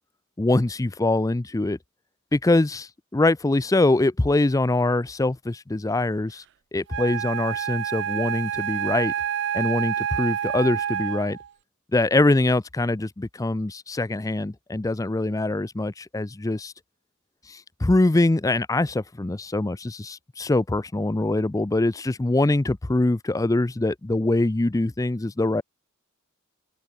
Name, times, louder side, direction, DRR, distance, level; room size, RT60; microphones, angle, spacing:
voice 1, 0.4-1.8 2.3-6.4 6.7-9.1 9.5-11.4 11.9-16.7 17.5-25.6, left 2 dB, 15° left, 0.5 m, -23 dB
Wind instrument woodwind instrument, 6.9-11.5, right 9 dB, 55° right, 0.4 m, -28 dB
head